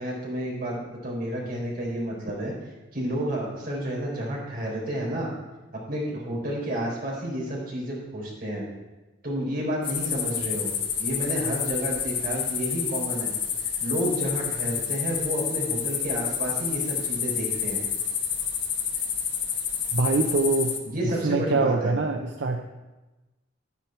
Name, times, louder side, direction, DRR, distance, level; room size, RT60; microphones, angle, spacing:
voice 1, 0.0-2.5 2.9-5.3 5.9-8.7 9.2-10.7 11.0-13.3 13.8-17.8 20.9-21.9, equal, 50° right, -3 dB, 4.2 m, -30 dB
sound 1, 9.8-20.8, left 8 dB, 70° left, 1.4 m, -29 dB
voice 2, 19.9-20.7 21.2-22.6, right 3 dB, 80° right, 4 dB, 0.7 m, -24 dB
10.5 x 9.6 x 4.5 m, 1.1 s
head